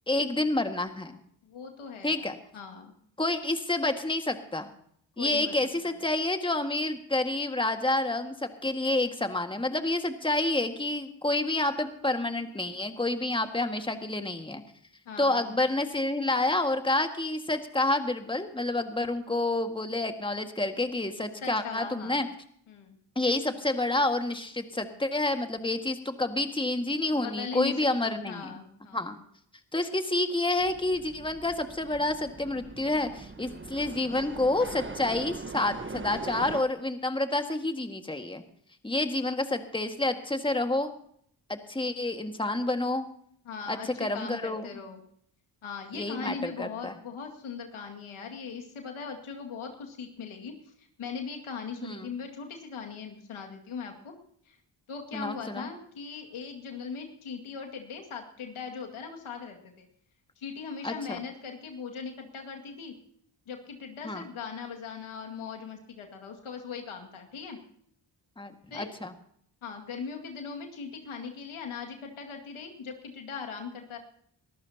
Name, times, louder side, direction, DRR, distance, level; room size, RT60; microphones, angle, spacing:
voice 1, 0.1-1.2 2.0-2.3 3.2-4.7 5.2-14.6 15.2-22.3 23.2-28.5 28.9-29.1 29.7-38.4 38.8-40.9 41.5-43.1 43.7-44.7 45.9-46.9 51.8-52.1 55.1-55.7 60.8-61.2 64.0-64.2 68.4-69.1, left 2 dB, 10° left, 6 dB, 1.8 m, -29 dB
voice 2, 1.4-2.3 2.5-2.9 5.2-5.5 5.8-6.0 15.1-15.6 21.4-22.2 22.7-23.0 27.1-27.8 28.0-29.1 43.4-45.0 45.6-54.1 54.5-54.6 54.9-59.9 60.4-62.9 63.5-67.6 68.7-68.9 69.6-74.0, left 5 dB, 80° left, 3 dB, 2.3 m, -39 dB
sound 1, 30.6-36.6, right 3 dB, 25° right, 1.1 m, -41 dB
22.0 x 14.5 x 2.9 m, 0.65 s
supercardioid pair, 45°, 48 cm